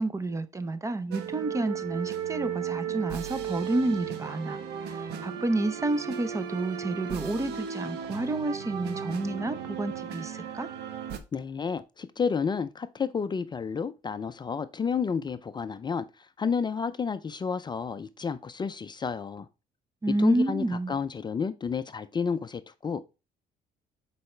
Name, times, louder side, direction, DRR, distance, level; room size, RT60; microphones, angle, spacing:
voice 1, 0.0-10.7 20.0-21.0, right 2 dB, 20° right, 0.6 m, -30 dB
sound 1, 1.1-11.2, right 8 dB, 80° right, 1.1 m, -35 dB
voice 2, 11.3-16.1 16.4-19.5 20.2-23.0, left 6 dB, 25° left, 0.5 m, -31 dB
6.8 x 4.8 x 3.2 m
cardioid pair, 110°, 17 cm